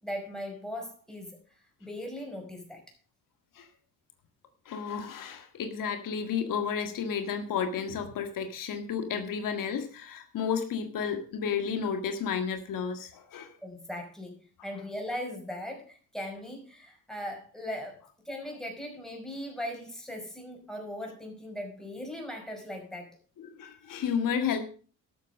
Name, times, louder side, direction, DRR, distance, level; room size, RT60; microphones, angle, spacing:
voice 1, 0.0-1.4 1.8-2.8 13.6-18.0 18.2-23.1, left 1 dB, ahead, 1 dB, 5.1 m, -39 dB
voice 2, 4.7-13.5 23.4-24.6, left 7 dB, 75° left, 6 dB, 1.9 m, -32 dB
13.0 x 7.6 x 6.5 m, 0.41 s
cardioid pair, 125°, 33 cm